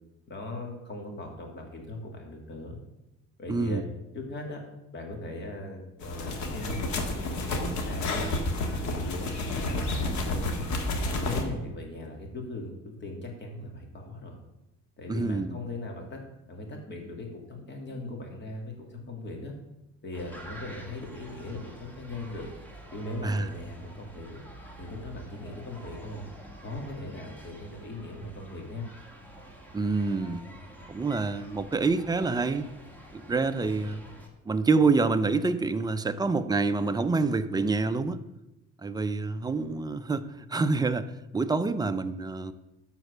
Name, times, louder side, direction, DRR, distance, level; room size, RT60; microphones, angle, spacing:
voice 1, 0.3-2.8 3.4-3.8 4.1-4.6 4.9-8.3 8.8-10.0 10.9-14.4 15.0-16.2 16.5-19.5 20.0-22.5 22.9-24.4 24.8-26.2 26.6-28.8, left 2 dB, 35° left, 2 dB, 2.3 m, -39 dB
voice 2, 3.5-3.8 15.1-15.6 23.2-23.5 29.7-30.4 30.9-32.7 33.1-34.1 34.5-38.2 38.8-41.1 41.3-42.5, right 3 dB, 15° right, 9 dB, 0.4 m, -27 dB
sound 1, 6.0-11.4, left 2 dB, 70° left, 1.7 m, -30 dB
sound 2, 20.1-34.3, right 1 dB, 5° left, 1.5 m, -47 dB
13.0 x 4.4 x 6.6 m, 0.94 s
cardioid pair, 145°, 30 cm